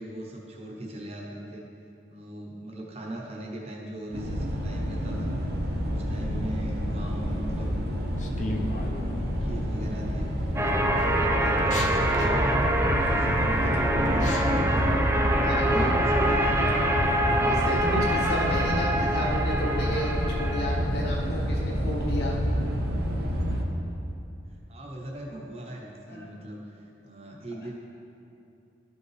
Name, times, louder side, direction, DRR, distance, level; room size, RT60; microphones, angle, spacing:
voice 1, 0.0-1.7 2.1-5.3 5.9-7.8 8.2-8.7 9.0-10.3 10.7-14.9 15.3-16.6 24.7-26.6 27.0-27.7, right 1 dB, 35° right, -1 dB, 0.8 m, -39 dB
sound 1, 4.1-23.6, equal, 55° right, 0.9 m, -28 dB
sound 2, 8.2-9.3 10.0-10.4 10.9-14.6, left 1 dB, 40° left, 0.6 m, -37 dB
sound 3, 10.6-20.8, right 1 dB, 15° right, 0.4 m, -25 dB
voice 2, 15.4-15.9 17.2-22.4 26.1-26.3, equal, 55° left, -3 dB, 1.5 m, -32 dB
12.5 x 5.3 x 3.2 m, 2.6 s
head